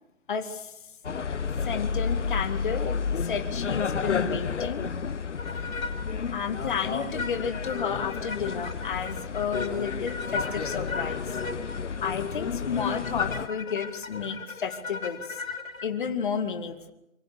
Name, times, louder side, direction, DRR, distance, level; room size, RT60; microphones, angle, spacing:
voice 1, 0.3-0.7 1.7-2.9 3.2-4.9 6.3-11.2 12.0-15.2 15.8-16.9, left 6 dB, 35° left, 8 dB, 2.3 m, -31 dB
sound 1, 1.0-13.5, left 6 dB, 60° left, 1.3 m, -31 dB
sound 2, 5.4-6.1 6.4-6.5 7.0-15.9, left 4 dB, 80° left, 3.0 m, -37 dB
27.0 x 23.5 x 6.8 m, 0.87 s
figure-of-eight pair, 155°, 41 cm